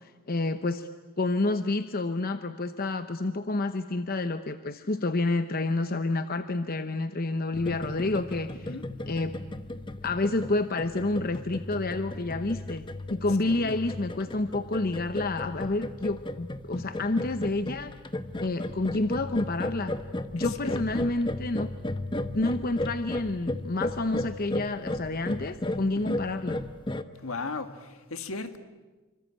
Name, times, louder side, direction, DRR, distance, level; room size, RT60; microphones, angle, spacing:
voice 1, 0.3-0.9 1.2-8.8 9.1-9.4 10.0-12.8 13.1-17.9 18.4-19.9 20.3-21.7 22.3-26.6, left 2 dB, 45° left, 0.9 m, -29 dB
sound 1, 7.5-27.0, left 1 dB, 20° left, 1.0 m, -35 dB
voice 2, 13.5-13.8 20.4-21.0 26.0-26.2 27.2-28.6, left 3 dB, 70° left, 1.8 m, -37 dB
26.5 x 25.0 x 8.8 m
head